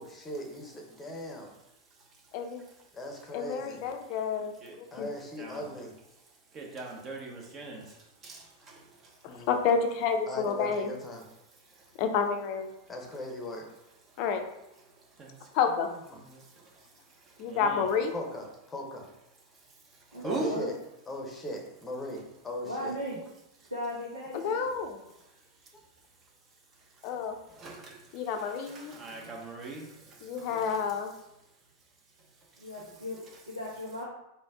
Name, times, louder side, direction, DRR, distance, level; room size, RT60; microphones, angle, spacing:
voice 1, 0.0-1.5 2.9-3.9 4.9-5.9 9.3-9.5 10.3-11.2 12.9-13.7 18.1-19.1 20.2-20.8 21.1-23.0, left 1 dB, 15° left, 1 dB, 0.9 m, -39 dB
voice 2, 1.9-2.8 4.6-5.0 5.4-5.7 6.1-9.5 11.5-12.0 14.1-14.2 14.9-15.6 16.1-17.9 19.5-20.5 23.6-23.7 25.1-25.7 26.2-26.3 26.7-31.0 32.2-33.1, right 3 dB, 25° right, 0 dB, 0.9 m, -43 dB
voice 3, 3.3-4.5 4.8-5.1 9.2-10.9 12.0-12.7 14.2-14.4 15.5-15.9 17.4-18.1 24.3-25.0 27.0-27.4 28.1-28.9 30.2-31.1, left 6 dB, 45° left, 5 dB, 0.5 m, -29 dB
voice 4, 20.1-20.7 22.6-23.2 23.7-24.7 32.6-34.0, left 1 dB, 85° right, -8 dB, 1.1 m, -37 dB
4.2 x 2.7 x 3.6 m, 0.89 s
figure-of-eight pair, 90°, 0 cm